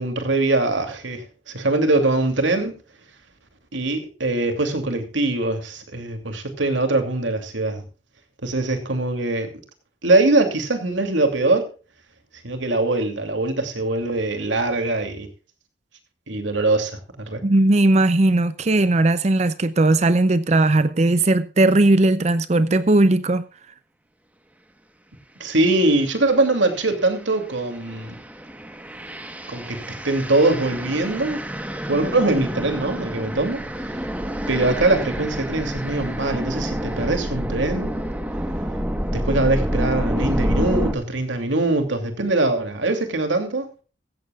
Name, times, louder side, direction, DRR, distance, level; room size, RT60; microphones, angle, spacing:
voice 1, 0.0-2.7 3.7-7.8 8.4-9.5 10.0-11.7 12.4-15.3 16.3-17.4 25.4-28.1 29.5-31.4 31.9-33.6 34.5-37.9 39.1-43.7, right 2 dB, 80° right, 2.8 m, -22 dB
voice 2, 17.4-23.4, right 2 dB, 35° right, 0.5 m, -18 dB
sound 1, 25.7-25.9 26.5-40.9, equal, 10° right, 1.2 m, -28 dB
16.0 x 14.5 x 2.4 m
head